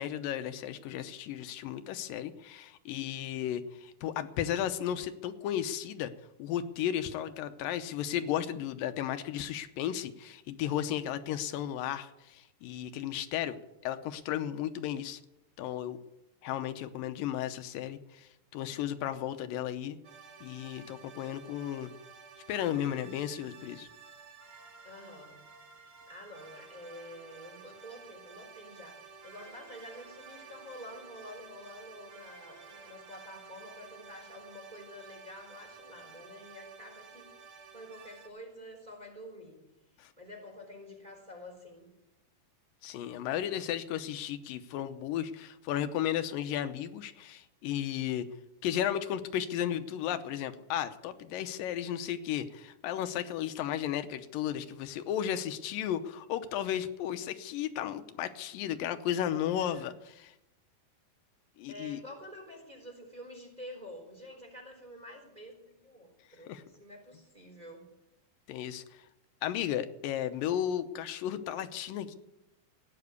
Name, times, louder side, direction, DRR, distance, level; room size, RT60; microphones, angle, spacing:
voice 1, 0.0-6.1 6.4-13.6 13.8-15.2 15.6-16.0 16.4-20.0 20.4-21.9 22.5-23.9 40.0-40.1 42.8-48.3 48.6-59.9 60.2-60.3 61.6-62.0 66.5-66.6 68.5-69.0 69.4-72.2, left 10 dB, 85° left, 9 dB, 2.5 m, -34 dB
sound 1, 20.0-38.3, right 5 dB, 40° right, 2.9 m, -52 dB
voice 2, 24.8-25.4 25.8-37.3 37.7-39.6 40.2-41.9 59.6-59.9 61.7-67.8, left 1 dB, 10° right, 0 dB, 3.7 m, -48 dB
16.0 x 9.7 x 8.2 m, 0.90 s
omnidirectional pair, 3.9 m